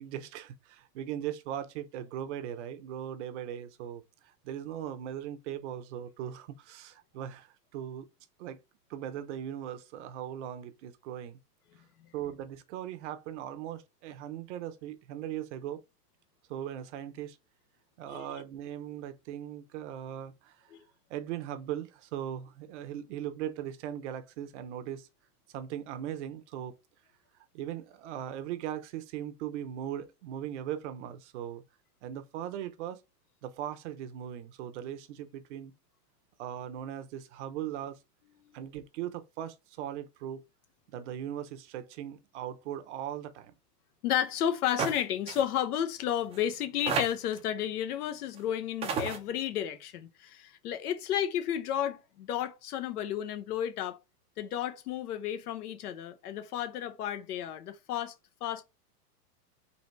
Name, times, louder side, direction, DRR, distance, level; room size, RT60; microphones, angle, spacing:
voice 1, 0.0-4.0 4.4-8.1 8.4-8.6 8.9-11.4 12.1-15.8 16.5-17.4 18.0-20.6 21.1-25.1 25.5-26.7 27.5-31.6 32.0-33.0 33.4-35.7 36.4-38.0 38.5-40.4 40.9-43.5, right 10 dB, 45° right, 0.8 m, -39 dB
voice 2, 18.1-18.4 20.7-20.8 38.4-38.5 44.0-54.0 54.4-58.6, left 10 dB, 65° left, 1.0 m, -32 dB
sound 1, 44.8-45.0 45.3-45.4 46.3-46.4 46.9-47.4 48.4-48.5 48.8-49.2, right 5 dB, 15° right, 0.5 m, -31 dB
4.1 x 2.8 x 4.5 m
hypercardioid pair, 140°, 48 cm